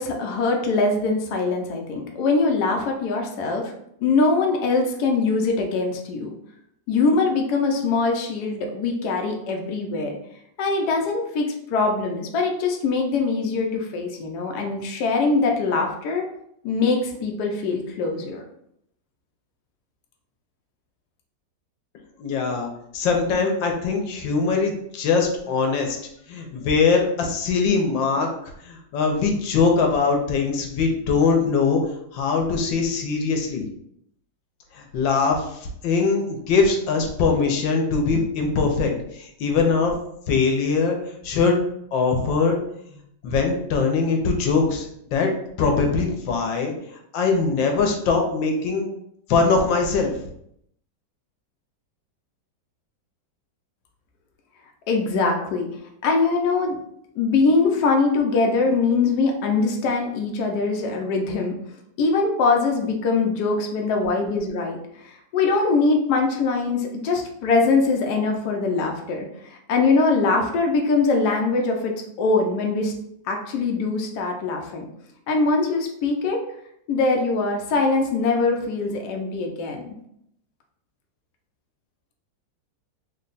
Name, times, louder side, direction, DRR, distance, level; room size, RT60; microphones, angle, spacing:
voice 1, 0.0-3.6 4.0-6.3 6.9-10.1 10.6-16.2 16.6-18.4 54.9-55.7 56.0-56.8 57.2-61.5 62.0-64.8 65.0-72.9 73.2-74.9 75.3-76.4 76.9-79.8, left 3 dB, 70° left, 2 dB, 1.1 m, -22 dB
voice 2, 22.2-22.7 22.9-26.0 26.3-28.3 28.6-31.8 32.1-33.7 34.7-39.9 40.3-41.0 41.2-41.6 41.9-42.6 43.2-45.3 45.6-46.7 47.1-48.9 49.3-50.1, left 4 dB, 90° left, 2 dB, 1.4 m, -22 dB
3.6 x 2.2 x 3.9 m, 0.73 s
omnidirectional pair, 2.0 m